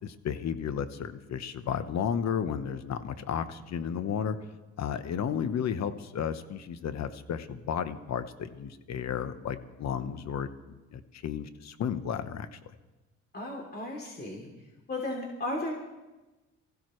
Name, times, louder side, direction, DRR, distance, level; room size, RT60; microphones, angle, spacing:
voice 1, 0.0-4.4 4.8-10.5 10.9-12.6, left 8 dB, 60° left, 11 dB, 1.0 m, -33 dB
voice 2, 13.3-14.5 14.9-15.7, left 2 dB, 35° left, -1 dB, 3.2 m, -35 dB
24.0 x 15.5 x 3.2 m, 1.1 s
cardioid pair, 90°, 30 cm